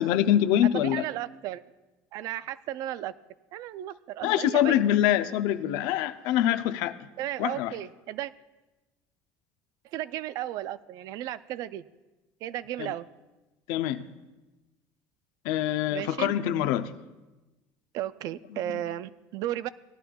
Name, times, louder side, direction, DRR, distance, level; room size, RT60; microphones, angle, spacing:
voice 1, 0.0-1.1 4.2-7.0 7.4-7.7 12.8-12.9 13.7-14.1 15.4-16.9 18.5-18.6, left 11 dB, 80° left, 11 dB, 0.5 m, -25 dB
voice 2, 0.8-1.6 2.1-3.1 3.5-4.8 7.2-8.3 9.9-11.8 12.4-13.1 15.9-16.3 17.9-19.7, right 13 dB, 60° right, 17 dB, 0.4 m, -34 dB
18.0 x 11.5 x 2.3 m, 1.1 s
cardioid pair, 140°, 7 cm